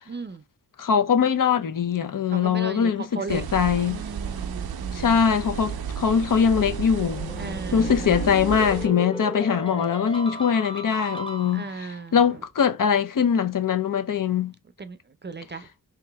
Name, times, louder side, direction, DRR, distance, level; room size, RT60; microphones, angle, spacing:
voice 1, 0.1-0.4 2.3-3.4 3.9-5.2 7.4-8.4 9.7-9.9 11.5-12.2 14.8-15.0 15.2-15.7, right 4 dB, 30° right, 0.5 m, -36 dB
voice 2, 0.8-4.0 4.9-7.3 7.7-14.5, left 7 dB, 60° left, 0.6 m, -22 dB
sound 1, 3.3-8.9, right 8 dB, 85° right, 0.5 m, -33 dB
sound 2, 7.0-11.9, equal, 15° left, 0.9 m, -35 dB
3.3 x 2.9 x 3.4 m
cardioid pair, 50°, 36 cm